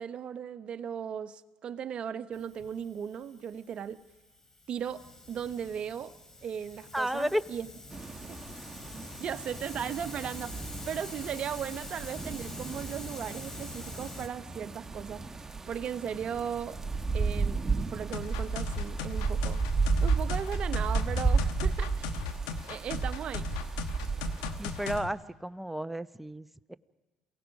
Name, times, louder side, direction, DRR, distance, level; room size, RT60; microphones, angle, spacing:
voice 1, 0.0-4.0 4.7-6.1 6.4-7.7 8.3-8.4 9.2-15.2 15.7-16.8 17.1-19.6 20.0-22.2 22.6-23.5, right 8 dB, 55° right, 1.0 m, -37 dB
Hiss, 2.3-14.3, left 2 dB, 25° left, 3.9 m, -46 dB
voice 2, 6.9-7.4 24.6-26.8, equal, 5° right, 0.9 m, -32 dB
sound 1, 7.9-25.0, right 4 dB, 20° right, 1.6 m, -33 dB
sound 2, 18.1-25.1, left 7 dB, 85° left, 1.1 m, -38 dB
28.0 x 17.5 x 5.3 m
hypercardioid pair, 65°, 2 cm